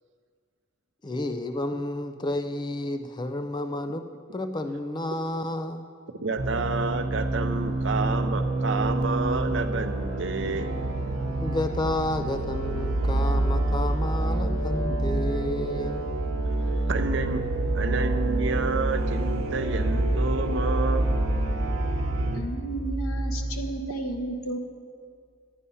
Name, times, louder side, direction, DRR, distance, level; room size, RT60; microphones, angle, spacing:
voice 1, 1.0-4.1 4.3-5.9 11.4-16.2, left 1 dB, 20° left, 8 dB, 0.4 m, -31 dB
voice 2, 6.2-10.8 14.9-15.0 16.4-17.5 17.7-21.2, right 3 dB, 60° right, 8 dB, 0.7 m, -30 dB
sound 1, 6.4-22.4, right 2 dB, 80° right, 1.1 m, -30 dB
sound 2, 9.5-10.4 10.9-11.0 11.6-23.7, right 1 dB, 15° right, 1.0 m, -28 dB
voice 3, 22.3-24.6, right 2 dB, 90° left, 3 dB, 1.3 m, -33 dB
11.0 x 9.8 x 5.6 m, 2.1 s
head